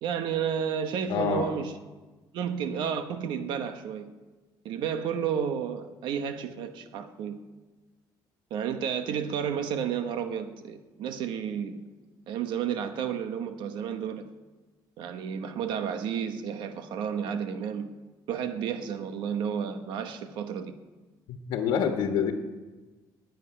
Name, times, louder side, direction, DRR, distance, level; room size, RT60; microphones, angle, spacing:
voice 1, 0.0-1.7 2.3-4.1 4.6-7.4 8.5-11.8 12.3-14.2 15.0-17.9 18.3-20.7, right 7 dB, 70° right, 9 dB, 1.0 m, -31 dB
voice 2, 1.1-1.5 21.3-22.3, left 7 dB, 90° left, 4 dB, 1.4 m, -27 dB
11.0 x 9.1 x 9.8 m, 1.2 s
cardioid pair, 180°, 8 cm